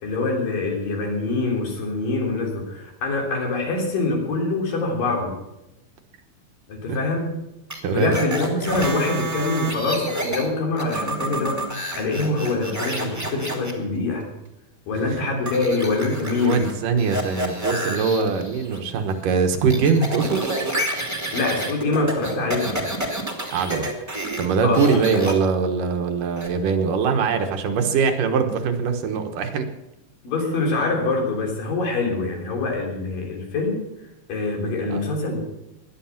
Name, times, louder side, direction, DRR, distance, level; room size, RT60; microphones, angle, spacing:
voice 1, 0.0-5.3 6.7-7.3 7.9-11.6 12.0-14.3 14.9-16.7 21.3-22.9 24.6-25.2 30.2-33.8 34.3-35.4, left 3 dB, 70° left, 1 dB, 5.1 m, -24 dB
sound 1, 7.7-10.5 10.8-13.7 15.5-16.7 17.0-18.8 19.1-24.5 24.7-25.3 26.4-26.5, right 1 dB, 5° right, 1.9 m, -29 dB
voice 2, 16.4-20.4 23.5-23.9 24.4-29.7 34.9-35.0, right 5 dB, 70° right, 6 dB, 2.8 m, -22 dB
17.0 x 11.5 x 5.9 m, 0.92 s
omnidirectional pair, 4.0 m